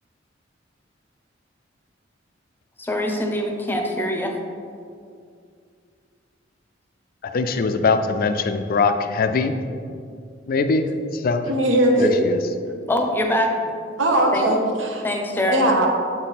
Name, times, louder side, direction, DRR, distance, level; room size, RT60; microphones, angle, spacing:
voice 1, 2.8-4.3 12.9-13.7 14.3-14.5 15.0-15.6, left 1 dB, 10° left, 2 dB, 0.6 m, -23 dB
voice 2, 7.3-9.5 10.5-10.9 11.1-11.5 12.0-12.4, left 4 dB, 50° left, 8 dB, 0.4 m, -21 dB
voice 3, 11.5-12.1 12.6-12.8 14.0-15.0 15.5-15.9, right 1 dB, 75° right, 1 dB, 1.0 m, -19 dB
7.2 x 4.2 x 4.0 m, 2.3 s
head